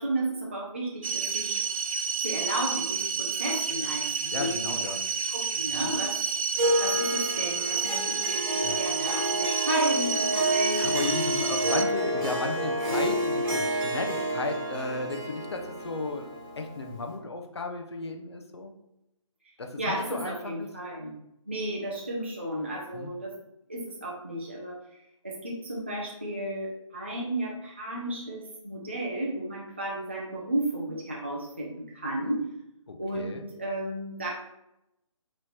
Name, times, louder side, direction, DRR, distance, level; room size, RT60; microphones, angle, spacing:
voice 1, 0.0-1.7 2.2-5.0 5.3-6.1 6.8-11.1 19.8-21.1 21.5-23.3 23.7-24.8 25.2-32.4 33.0-34.3, right 1 dB, 20° right, -5 dB, 0.3 m, -33 dB
sound 1, 1.0-11.8, right 6 dB, 80° right, 0.5 m, -30 dB
voice 2, 4.3-5.0 5.7-5.9 8.6-8.8 10.8-18.7 19.6-20.7 22.9-23.1 32.9-33.4, left 3 dB, 50° left, 4 dB, 0.5 m, -34 dB
Harp, 6.6-17.2, right 1 dB, 40° right, 1.3 m, -29 dB
4.0 x 3.0 x 3.0 m, 0.85 s
hypercardioid pair, 175°, 17 cm